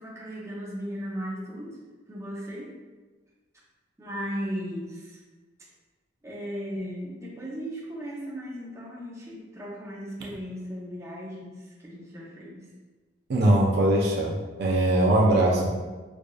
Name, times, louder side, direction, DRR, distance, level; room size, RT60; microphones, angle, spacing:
voice 1, 0.0-1.7 2.1-2.7 4.0-5.2 6.2-11.6 11.8-12.7, equal, 15° right, -5 dB, 0.6 m, -36 dB
voice 2, 13.3-15.7, right 1 dB, 55° right, -2 dB, 0.5 m, -21 dB
4.7 x 2.5 x 2.3 m, 1.3 s
head